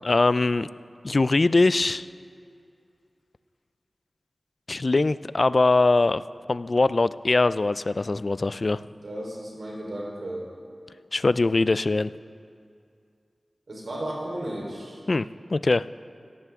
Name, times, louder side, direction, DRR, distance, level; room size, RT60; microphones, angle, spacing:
voice 1, 0.0-0.7 1.0-2.1 4.7-6.2 6.5-8.8 11.1-12.1 15.1-15.8, left 3 dB, 55° left, 16 dB, 0.3 m, -22 dB
voice 2, 8.8-10.5 13.7-15.0, right 1 dB, 80° right, -3 dB, 3.8 m, -34 dB
16.5 x 14.0 x 3.6 m, 2.4 s
wide cardioid pair, 55°, 0 cm